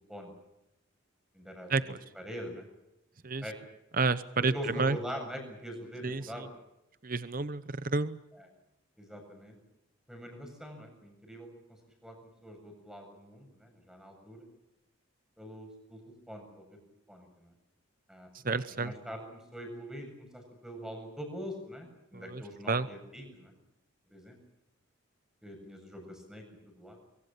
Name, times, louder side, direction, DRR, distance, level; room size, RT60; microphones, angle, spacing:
voice 1, 1.3-1.8 2.1-2.7 3.4-3.6 4.4-6.5 8.3-8.5 9.0-9.6 10.1-11.5 12.0-12.2 12.4-14.5 15.4-16.0 16.3-16.8 17.1-17.5 18.1-23.5 24.1-24.4 25.4-26.4 26.7-27.0, equal, 5° right, 4 dB, 7.7 m, -43 dB
voice 2, 4.0-4.5 4.8-5.0 6.0-6.2 7.0-8.2 18.4-18.9 22.1-22.4 22.7-22.9, right 4 dB, 40° right, 14 dB, 0.9 m, -30 dB
25.0 x 23.5 x 7.3 m, 0.89 s
head